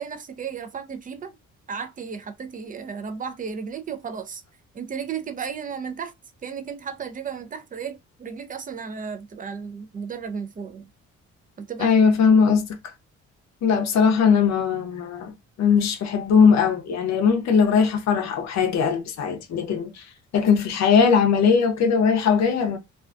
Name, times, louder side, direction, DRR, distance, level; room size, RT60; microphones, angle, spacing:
voice 1, 0.0-1.4 1.7-4.4 4.7-6.1 6.4-10.9 11.6-11.9, right 6 dB, 25° right, 0.5 m, -34 dB
voice 2, 11.8-12.7 13.6-20.1 20.3-22.8, left 6 dB, 65° left, 0.6 m, -19 dB
2.4 x 2.2 x 2.4 m
cardioid pair, 90°, 30 cm